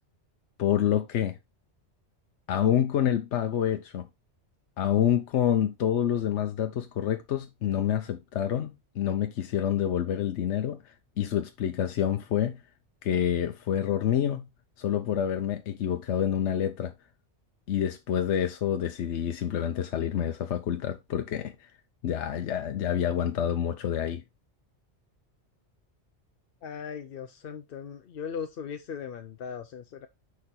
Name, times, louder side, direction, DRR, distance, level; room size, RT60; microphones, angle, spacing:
voice 1, 0.6-1.4 2.5-4.1 4.8-10.8 11.2-12.6 13.0-14.5 14.8-16.9 17.7-21.7 22.0-24.2, left 10 dB, 80° left, 1.0 m, -27 dB
voice 2, 26.6-30.1, left 7 dB, 60° left, 0.8 m, -38 dB
6.7 x 4.8 x 4.1 m
omnidirectional pair, 1.2 m